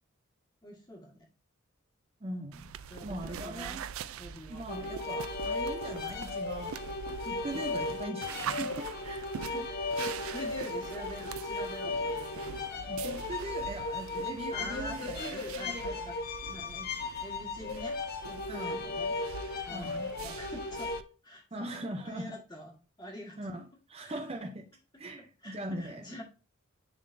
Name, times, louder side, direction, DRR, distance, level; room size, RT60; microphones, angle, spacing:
voice 1, 0.6-1.3 2.9-3.8 4.2-4.6 7.5-7.7 9.4-13.5 14.5-16.2 16.5-16.9 17.2-19.1 19.6-20.9 21.2-23.5 24.0-24.2 25.4-26.2, left 1 dB, 20° left, 1.6 m, -45 dB
voice 2, 2.2-2.7 3.0-3.9 4.5-6.8 7.3-9.3 12.9-16.0 18.5-18.8 19.7-20.1 21.5-22.3 23.4-24.7 25.0-26.0, right 1 dB, 25° right, 0.5 m, -40 dB
sound 1, 2.5-21.0, right 7 dB, 75° right, 0.4 m, -43 dB
sound 2, 4.7-21.0, left 3 dB, 45° left, 0.7 m, -36 dB
9.9 x 3.8 x 2.6 m
head